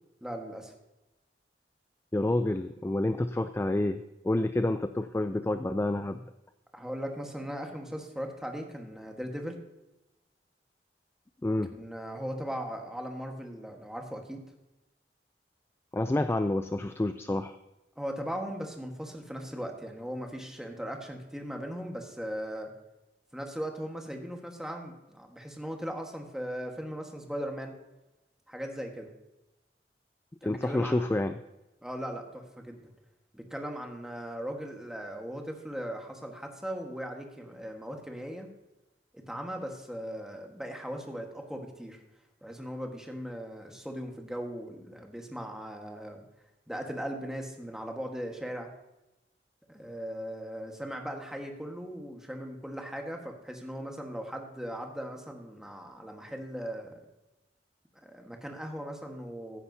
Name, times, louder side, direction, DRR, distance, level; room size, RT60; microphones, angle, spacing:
voice 1, 0.2-0.7 6.7-9.6 11.7-14.4 18.0-22.7 23.3-27.8 28.5-29.1 30.4-31.1 31.8-32.8 33.3-38.5 39.1-42.0 42.4-46.2 46.7-48.7 49.7-57.0 58.0-59.6, equal, 5° right, 2 dB, 1.4 m, -38 dB
voice 2, 2.1-6.2 11.4-11.7 15.9-17.6 30.4-31.4, left 1 dB, 15° left, 9 dB, 0.3 m, -28 dB
15.0 x 9.9 x 2.7 m, 0.97 s
head